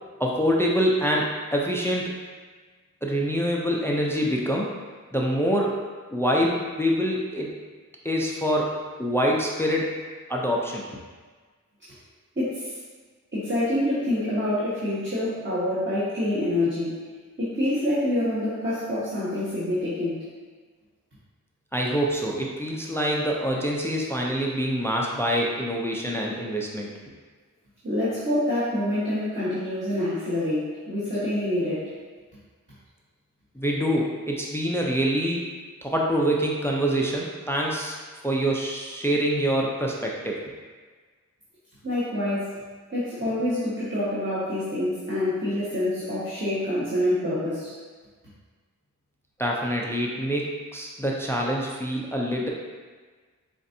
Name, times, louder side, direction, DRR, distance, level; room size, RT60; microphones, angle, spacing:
voice 1, 0.2-2.1 3.0-4.7 5.1-5.7 6.1-7.5 8.0-8.7 9.0-9.9 10.3-10.8 21.7-26.9 33.6-35.4 35.8-38.0 38.2-40.4 49.4-52.5, equal, 5° left, -2 dB, 0.5 m, -25 dB
voice 2, 12.3-12.8 13.3-17.0 17.4-20.2 27.8-31.9 41.8-42.6 42.9-47.7, left 1 dB, 35° right, -12 dB, 1.3 m, -26 dB
5.1 x 2.5 x 2.6 m, 1.4 s
wide cardioid pair, 40°, 34 cm